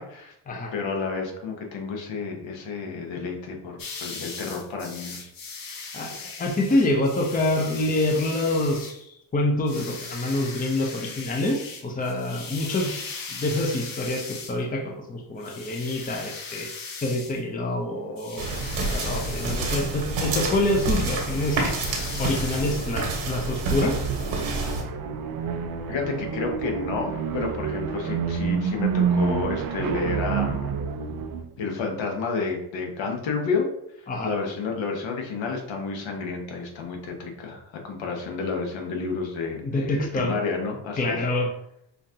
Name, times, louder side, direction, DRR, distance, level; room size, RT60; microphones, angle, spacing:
voice 1, 0.0-0.3 0.7-5.3 25.9-30.8 31.6-33.6 34.0-41.2, left 4 dB, 70° left, 1 dB, 1.1 m, -30 dB
sound 1, 3.8-9.0 9.7-14.6 15.4-17.4 18.1-19.9 20.5-23.0, left 4 dB, 45° left, 0.9 m, -39 dB
voice 2, 6.4-12.9 13.3-16.7 17.0-18.5 18.9-21.6 22.2-24.0 28.0-28.2 34.1-34.3 39.6-40.3 41.0-41.5, left 1 dB, 20° left, 1 dB, 0.6 m, -26 dB
sound 2, 18.4-24.8, right 3 dB, 80° right, 1.4 m, -28 dB
sound 3, 23.8-31.5, right 6 dB, 50° right, 0.5 m, -28 dB
5.6 x 2.5 x 2.8 m, 0.78 s
cardioid pair, 125°, 47 cm